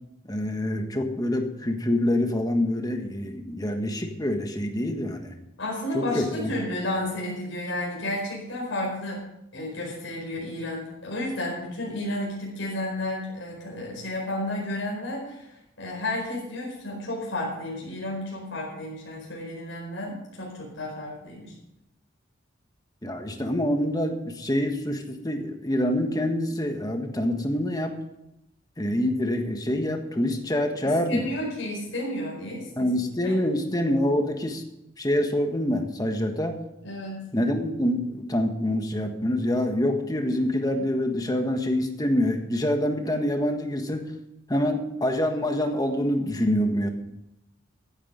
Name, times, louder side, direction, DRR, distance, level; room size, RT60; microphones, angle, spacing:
voice 1, 0.2-5.3 5.9-6.5 23.0-28.0 28.8-31.3 32.8-34.6 35.0-36.6 37.3-44.1 44.5-46.9, left 1 dB, 20° left, 5 dB, 1.5 m, -26 dB
voice 2, 5.6-9.2 9.5-21.5 30.8-32.9 33.2-33.4 36.8-37.3, left 1 dB, 75° left, -4 dB, 4.9 m, -32 dB
15.5 x 9.7 x 5.2 m, 0.87 s
head